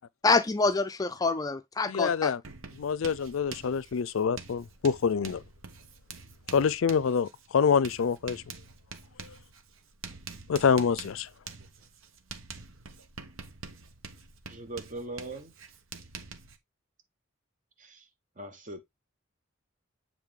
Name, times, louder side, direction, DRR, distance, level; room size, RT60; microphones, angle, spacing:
voice 1, 0.2-2.3, left 3 dB, 20° left, 0.4 m, -26 dB
voice 2, 1.9-2.4 2.8-5.4 6.5-8.4 10.5-11.3, left 6 dB, 85° left, 0.4 m, -26 dB
Writing, 2.4-16.6, right 5 dB, 90° right, 1.1 m, -46 dB
voice 3, 14.5-15.5 17.8-18.0 18.4-18.8, right 2 dB, 40° right, 1.3 m, -40 dB
7.4 x 3.9 x 3.6 m
head